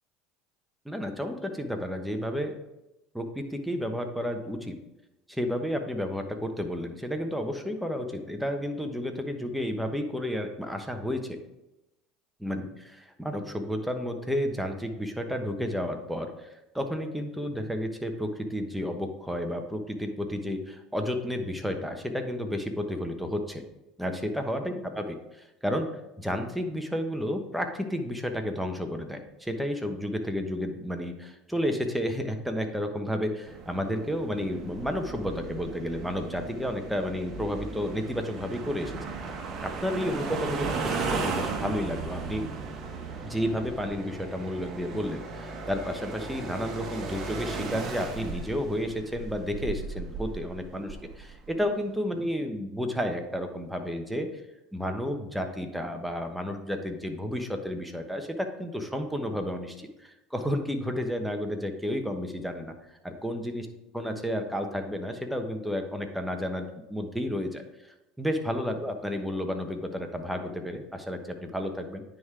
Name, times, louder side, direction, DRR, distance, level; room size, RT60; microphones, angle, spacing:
voice 1, 0.8-2.5 3.1-4.7 5.3-11.4 12.4-16.5 16.7-23.6 24.0-25.9 26.2-38.9 39.6-42.4 43.2-54.3 54.7-62.7 63.0-63.6 63.9-67.6 68.2-72.0, equal, 5° right, 5 dB, 1.1 m, -31 dB
sound 1, 33.5-51.6, right 4 dB, 40° right, 1.2 m, -36 dB
9.5 x 3.8 x 4.7 m, 0.92 s
hypercardioid pair, 80°, 0 cm